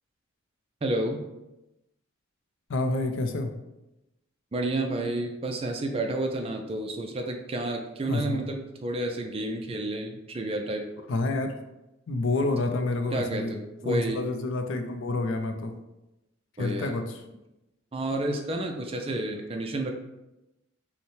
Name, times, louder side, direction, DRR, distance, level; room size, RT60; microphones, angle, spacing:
voice 1, 0.8-1.2 4.5-10.8 13.1-14.2 16.6-16.9 17.9-19.9, right 2 dB, 30° right, 4 dB, 0.4 m, -30 dB
voice 2, 2.7-3.5 8.1-8.4 11.1-11.5 12.1-13.5 13.8-15.7 16.6-17.0, left 2 dB, 70° left, 6 dB, 0.5 m, -28 dB
5.4 x 2.1 x 3.2 m, 0.95 s
head